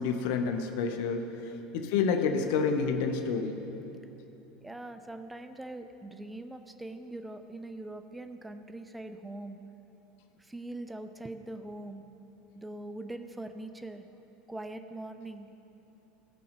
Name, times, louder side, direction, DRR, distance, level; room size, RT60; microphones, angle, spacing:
voice 1, 0.0-1.3 1.7-3.6, left 5 dB, 55° left, 6 dB, 0.8 m, -28 dB
voice 2, 1.4-1.9 4.6-9.6 10.4-12.0 12.6-14.0 14.5-15.5, right 2 dB, 10° right, 8 dB, 0.6 m, -42 dB
16.5 x 5.7 x 6.4 m, 3.0 s
figure-of-eight pair, 75°, 0 cm